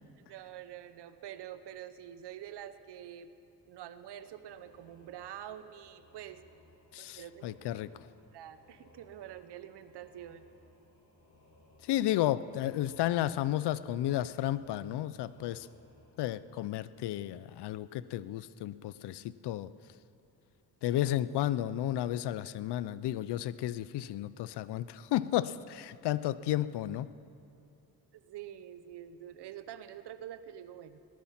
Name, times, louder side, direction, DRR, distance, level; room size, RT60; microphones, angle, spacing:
voice 1, 0.3-3.3 3.7-6.4 7.0-7.6 8.3-10.5 28.1-31.0, right 11 dB, 75° right, 12 dB, 0.9 m, -46 dB
sound 1, 4.1-17.6, left 1 dB, 45° left, 3.3 m, -63 dB
voice 2, 6.9-7.9 11.8-15.7 16.2-19.7 20.8-27.1, left 13 dB, 75° left, 16 dB, 0.6 m, -32 dB
18.0 x 11.5 x 5.8 m, 2.6 s
cardioid pair, 80°, 41 cm